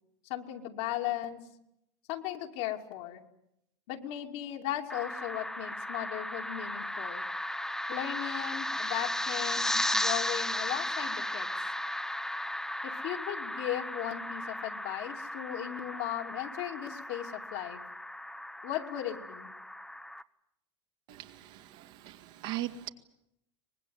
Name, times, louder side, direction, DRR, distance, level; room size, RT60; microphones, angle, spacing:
voice 1, 0.3-1.4 2.1-3.2 3.9-7.2 7.9-11.5 12.8-17.8 18.6-19.5, left 12 dB, 65° left, 2.9 m, -37 dB
sound 1, 4.9-20.2, left 1 dB, 5° left, 0.9 m, -35 dB
voice 2, 21.1-22.9, right 14 dB, 65° right, 2.3 m, -39 dB
24.5 x 20.0 x 9.6 m
hypercardioid pair, 110°, 15 cm